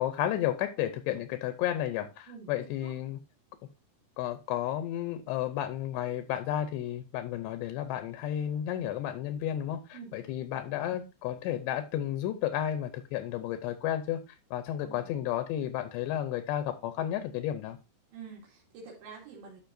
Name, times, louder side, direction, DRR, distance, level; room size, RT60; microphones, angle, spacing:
voice 1, 0.0-3.2 4.2-17.8, left 11 dB, 80° left, 10 dB, 2.7 m, -32 dB
voice 2, 14.8-15.2 18.1-19.6, right 5 dB, 75° right, -3 dB, 4.3 m, -47 dB
11.5 x 6.2 x 2.6 m, 0.28 s
omnidirectional pair, 5.2 m